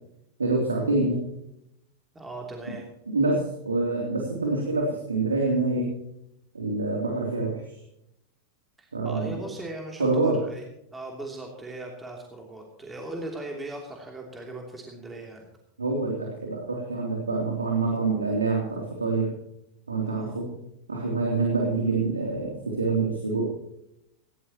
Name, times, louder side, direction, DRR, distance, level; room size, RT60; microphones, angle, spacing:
voice 1, 0.4-1.2 3.1-5.9 6.5-7.8 8.9-9.4 10.0-10.4 15.8-19.3 19.9-20.5 20.9-23.5, right 3 dB, 75° right, 0 dB, 3.1 m, -26 dB
voice 2, 2.1-2.8 8.8-10.6 10.9-15.5 20.1-20.4, right 2 dB, 10° right, 0 dB, 3.0 m, -39 dB
19.5 x 16.5 x 3.0 m, 0.81 s
figure-of-eight pair, 90°, 0 cm